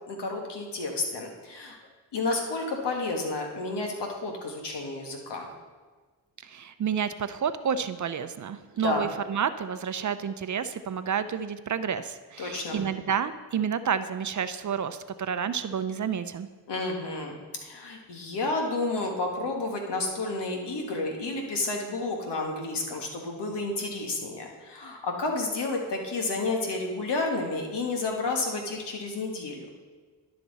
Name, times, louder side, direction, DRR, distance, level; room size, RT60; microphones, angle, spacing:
voice 1, 0.1-1.8 2.1-5.5 8.8-9.0 12.4-12.8 16.7-29.7, left 3 dB, 75° left, 1 dB, 1.6 m, -31 dB
voice 2, 6.4-16.5, right 7 dB, 45° right, 12 dB, 0.6 m, -30 dB
11.5 x 6.0 x 4.1 m, 1.4 s
supercardioid pair, 50°, 42 cm